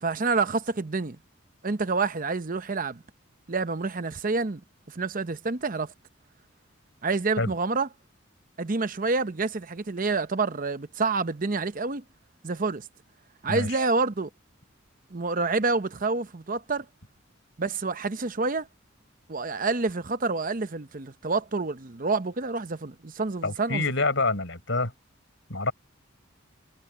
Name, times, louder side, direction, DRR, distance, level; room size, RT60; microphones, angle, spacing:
voice 1, 0.0-1.2 1.6-3.0 3.5-4.6 4.9-5.9 7.0-7.9 8.6-12.0 12.4-12.9 13.4-14.3 15.1-16.9 17.6-18.7 19.3-23.9, right 3 dB, 40° right, 0.8 m, -28 dB
voice 2, 13.5-13.8 23.4-24.9 25.5-25.7, left 3 dB, 65° left, 5.8 m, -27 dB
head